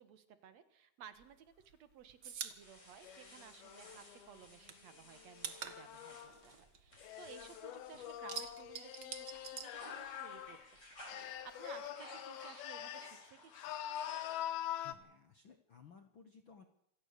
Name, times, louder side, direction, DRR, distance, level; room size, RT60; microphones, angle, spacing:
voice 1, 0.0-6.2 6.4-13.7, right 8 dB, 55° right, 11 dB, 2.2 m, -57 dB
sound 1, 1.2-4.0 4.3-7.6 7.9-10.5 10.7-11.9, right 7 dB, 80° right, 0.9 m, -47 dB
sound 2, 2.6-8.8 9.2-14.7, left 1 dB, 20° left, 5.6 m, -57 dB
sound 3, 3.0-6.4 7.0-10.7 11.1-13.2 13.5-14.9, left 11 dB, 90° left, 2.9 m, -45 dB
voice 2, 14.7-16.6, left 6 dB, 70° left, 7 dB, 1.1 m, -59 dB
27.0 x 16.0 x 6.8 m, 0.76 s
omnidirectional pair, 4.3 m